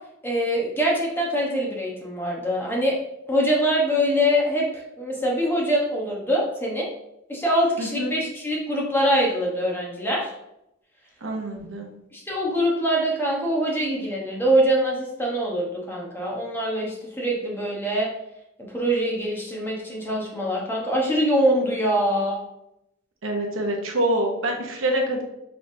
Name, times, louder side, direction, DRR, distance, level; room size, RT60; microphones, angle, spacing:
voice 1, 0.2-2.9 3.3-6.9 7.3-10.3 12.1-18.1 18.6-22.4, equal, 10° left, -3 dB, 1.0 m, -24 dB
voice 2, 7.8-8.1 11.2-11.9 23.2-25.2, right 1 dB, 70° right, 1 dB, 0.9 m, -26 dB
5.4 x 3.4 x 2.7 m, 0.83 s
head